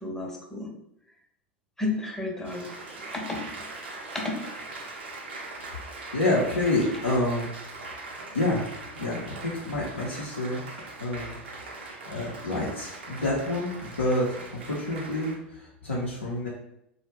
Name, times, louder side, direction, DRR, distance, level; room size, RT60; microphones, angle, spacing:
voice 1, 0.0-0.7 1.8-2.7 3.1-3.4 4.1-4.4, left 2 dB, 5° left, 0 dB, 0.6 m, -31 dB
Applause, 2.5-15.3, right 2 dB, 70° right, 0.5 m, -41 dB
voice 2, 6.1-7.5 8.3-10.6 11.0-11.4 12.1-16.5, left 1 dB, 80° left, -6 dB, 0.5 m, -28 dB
2.1 x 2.1 x 3.2 m, 0.78 s
figure-of-eight pair, 80°, 6 cm